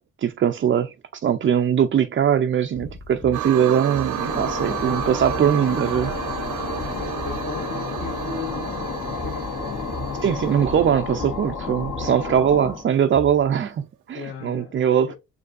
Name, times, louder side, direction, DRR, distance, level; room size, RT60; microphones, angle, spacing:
voice 1, 0.2-6.1 10.2-15.1, right 8 dB, 40° right, 0.5 m, -21 dB
sound 1, 2.7-8.4 8.7-12.4 12.6-13.8, equal, 20° left, 1.3 m, -40 dB
sound 2, 3.3-12.1 12.7-12.8, right 10 dB, 80° right, 0.9 m, -32 dB
sound 3, 4.0-12.9, left 5 dB, 60° left, 1.8 m, -31 dB
voice 2, 6.9-9.8 14.1-15.1, left 5 dB, 40° left, 1.3 m, -37 dB
6.5 x 2.7 x 2.5 m
cardioid pair, 90°, 30 cm